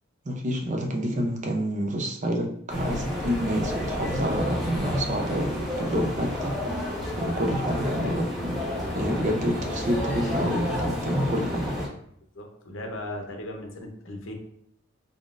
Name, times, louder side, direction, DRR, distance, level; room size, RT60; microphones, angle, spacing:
voice 1, 0.2-6.5 7.2-8.5 9.0-11.8, equal, 40° right, 2 dB, 0.6 m, -28 dB
sound 1, 2.7-11.9, left 1 dB, ahead, 1.1 m, -31 dB
voice 2, 12.3-14.3, left 1 dB, 75° left, 2 dB, 0.8 m, -37 dB
3.7 x 3.7 x 2.5 m, 0.69 s
head